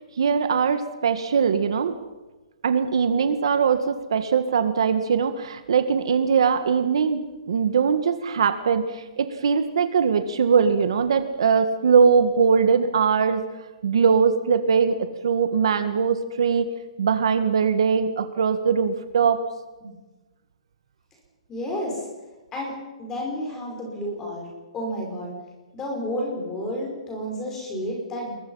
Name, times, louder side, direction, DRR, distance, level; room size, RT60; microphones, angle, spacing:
voice 1, 0.2-2.0 2.6-13.4 13.8-16.7 17.0-19.4, right 6 dB, 55° right, 8 dB, 1.8 m, -21 dB
voice 2, 21.5-22.0 22.5-24.5 24.7-25.3 25.7-28.4, equal, 10° left, 0 dB, 5.5 m, -31 dB
28.0 x 22.0 x 5.7 m, 1.2 s
hypercardioid pair, 180°, 3 cm